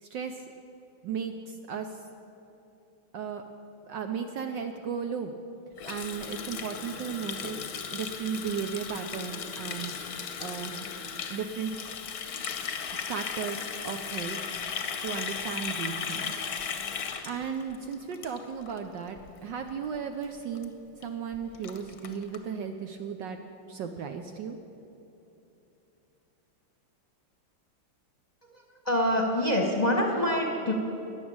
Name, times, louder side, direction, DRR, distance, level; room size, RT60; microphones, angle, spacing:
voice 1, 0.0-0.4 1.0-2.0 3.1-3.4 3.9-5.3 5.9-7.6 7.9-9.9 10.4-10.8 11.3-11.7 13.1-14.4 15.0-16.3 17.2-20.7 21.0-23.4 23.7-24.6, right 7 dB, 70° right, 6 dB, 1.2 m, -35 dB
Water tap faucet, 5.8-18.8 19.1-19.3 19.6-20.0 20.2-20.3 20.6-20.7 21.0-21.1 21.3-22.4, left 7 dB, 55° left, 1.2 m, -36 dB
voice 2, 28.5-30.7, left 1 dB, 25° left, 1 dB, 1.0 m, -26 dB
13.5 x 10.0 x 8.6 m, 2.9 s
omnidirectional pair, 2.4 m